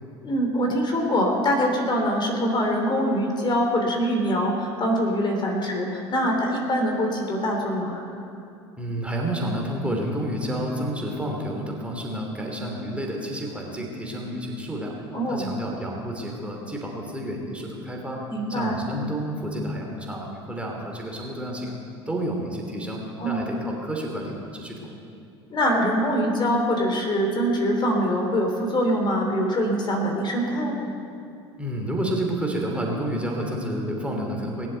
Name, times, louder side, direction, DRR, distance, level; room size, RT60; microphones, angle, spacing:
voice 1, 0.2-8.0 15.1-15.5 18.3-18.8 23.2-23.5 25.5-30.7, equal, 35° left, 1 dB, 3.3 m, -24 dB
voice 2, 8.8-14.9 15.3-18.2 18.5-21.8 22.1-24.9 31.6-34.7, right 1 dB, 10° right, 0 dB, 3.1 m, -30 dB
20.5 x 7.6 x 8.1 m, 2.6 s
hypercardioid pair, 75°, 14 cm